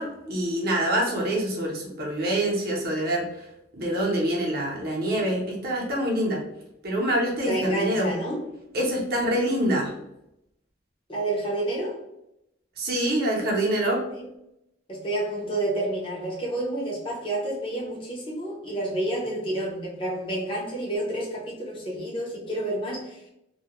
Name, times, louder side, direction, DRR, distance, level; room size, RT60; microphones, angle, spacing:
voice 1, 0.0-3.4 3.7-6.4 6.8-8.1 8.7-9.9 12.8-14.0, right 1 dB, 50° right, -3 dB, 0.7 m, -25 dB
voice 2, 7.5-8.4 11.1-12.0 14.2-14.3 14.9-23.3, right 1 dB, 25° left, -3 dB, 0.5 m, -29 dB
2.2 x 2.1 x 2.8 m, 0.85 s
head